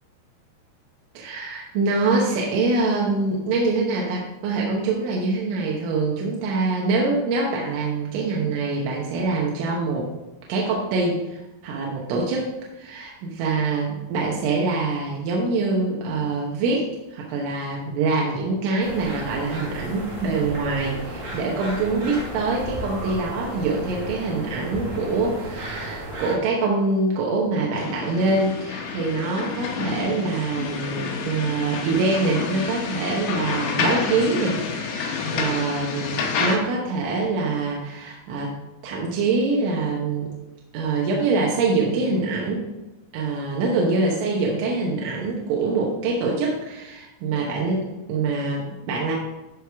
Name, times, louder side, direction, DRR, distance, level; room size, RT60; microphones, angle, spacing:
voice 1, 1.2-10.1 10.5-12.5 12.8-38.5 38.8-40.4 40.7-42.7 43.1-49.1, right 3 dB, 85° right, -3 dB, 3.6 m, -24 dB
sound 1, 18.8-26.3, right 1 dB, 55° right, 3.1 m, -34 dB
sound 2, 27.7-36.6, left 5 dB, 70° left, 2.8 m, -29 dB
14.0 x 4.8 x 3.5 m, 1.0 s
omnidirectional pair, 5.4 m